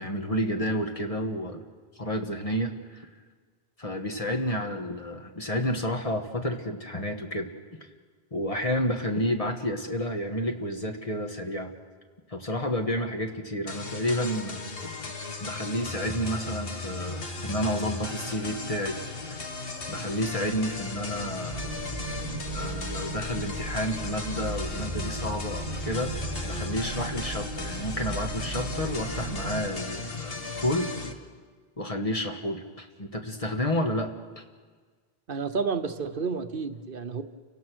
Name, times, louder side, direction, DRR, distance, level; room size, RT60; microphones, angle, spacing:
voice 1, 0.0-1.6 1.9-3.1 3.8-7.5 8.3-11.7 12.3-14.6 15.4-19.0 19.9-21.6 22.5-26.1 26.4-30.9 31.8-34.4, equal, 35° left, 4 dB, 1.5 m, -30 dB
sound 1, 13.7-31.1, left 3 dB, 65° left, 1.6 m, -36 dB
sound 2, 21.5-29.7, right 3 dB, 45° right, 1.3 m, -36 dB
voice 2, 35.3-37.2, right 5 dB, 60° right, 9 dB, 1.0 m, -30 dB
30.0 x 17.0 x 6.2 m, 1.5 s
omnidirectional pair, 1.0 m